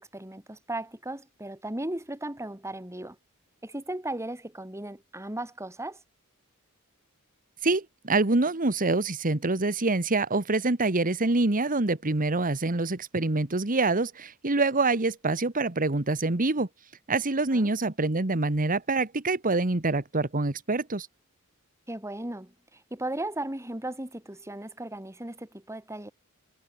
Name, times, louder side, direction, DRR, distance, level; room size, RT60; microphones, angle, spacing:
voice 1, 0.0-3.2 3.6-6.0 17.5-17.7 21.9-26.1, right 1 dB, 15° right, 2.8 m, -36 dB
voice 2, 7.6-16.7 17.1-21.1, right 3 dB, 40° right, 1.5 m, -26 dB
head